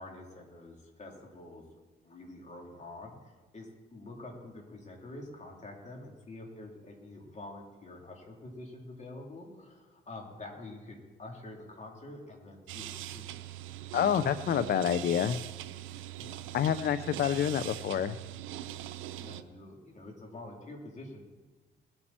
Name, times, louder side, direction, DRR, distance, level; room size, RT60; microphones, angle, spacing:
voice 1, 0.0-1.6 2.0-13.3 16.2-16.4 19.2-21.3, left 2 dB, 35° left, 0 dB, 3.6 m, -47 dB
sound 1, 12.7-19.4, right 13 dB, 90° right, 0.6 m, -41 dB
voice 2, 13.9-15.4 16.5-18.2, left 9 dB, 55° left, 13 dB, 0.6 m, -28 dB
20.5 x 8.9 x 4.4 m, 1.3 s
cardioid pair, 90°, 20 cm